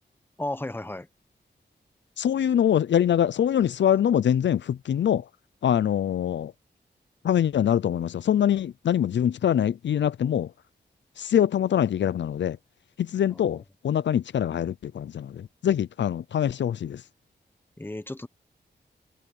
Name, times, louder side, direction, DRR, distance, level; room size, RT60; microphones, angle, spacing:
voice 1, 0.4-1.1 13.3-13.6 17.8-18.3, left 1 dB, 10° left, 1.1 m, -34 dB
voice 2, 2.2-5.2 5.6-6.5 7.2-10.5 11.2-12.6 13.0-15.3 15.6-17.0, left 9 dB, 80° left, 0.5 m, -24 dB
wide cardioid pair, 135°, 18 cm